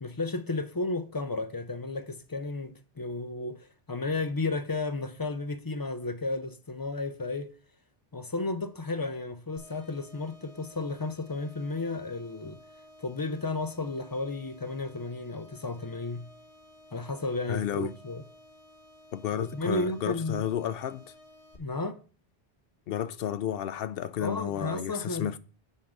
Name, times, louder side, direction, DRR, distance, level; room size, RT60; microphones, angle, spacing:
voice 1, 0.0-7.5 8.1-12.6 13.0-16.2 16.9-18.2 19.3-20.5 21.6-22.0 24.2-25.3, left 3 dB, 30° left, 0.4 m, -33 dB
sound 1, 9.6-21.6, left 1 dB, 90° left, 1.8 m, -55 dB
voice 2, 17.5-17.9 19.1-21.1 22.9-25.4, left 10 dB, 70° left, 0.7 m, -32 dB
9.8 x 3.6 x 6.0 m
omnidirectional pair, 1.0 m